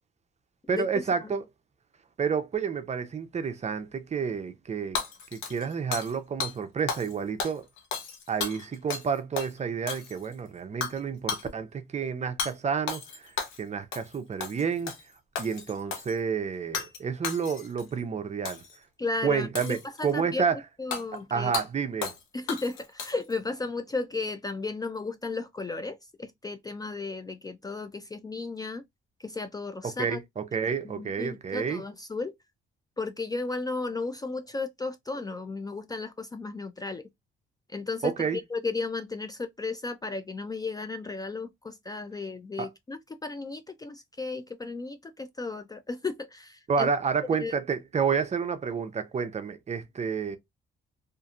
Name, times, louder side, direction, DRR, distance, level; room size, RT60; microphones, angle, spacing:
voice 1, 0.7-1.4 2.2-5.0 5.3-7.7 8.3-14.9 15.4-18.6 19.2-20.6 21.1-22.1 29.8-31.8 38.0-38.4 42.6-42.7 46.7-50.4, right 6 dB, 35° right, 0.5 m, -30 dB
Hammer / Shatter, 4.9-6.1 6.4-6.5 6.9-7.1 7.4-9.1 9.4-9.5 9.9-10.3 10.8-11.0 11.3-11.5 12.4-12.5 12.9-13.6 13.9-14.1 14.4-15.0 15.3-16.1 16.7-17.0 17.2-17.8 18.4-18.8 19.5-20.1 20.9-21.0 21.5-21.7 22.0-22.2 22.5-23.3, left 6 dB, 85° left, 0.8 m, -34 dB
voice 2, 19.0-20.4 20.8-21.5 22.3-28.8 29.2-30.2 30.8-32.3 33.0-37.0 37.7-46.9 47.4-47.5, left 3 dB, 20° left, 0.3 m, -34 dB
2.8 x 2.5 x 2.3 m
cardioid pair, 90°, 20 cm